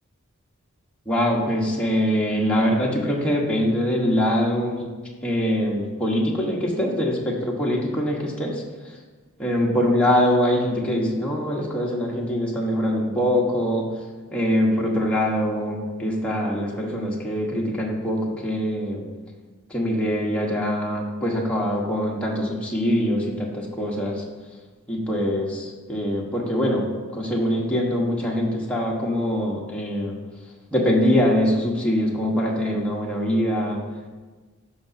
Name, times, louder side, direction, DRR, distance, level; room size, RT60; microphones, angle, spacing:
voice 1, 1.1-4.9 5.2-8.6 9.4-13.9 14.3-19.0 19.7-24.2 24.9-26.9 27.1-30.1 30.7-33.8, equal, 5° left, -4 dB, 1.2 m, -23 dB
13.5 x 5.0 x 2.7 m, 1.3 s
head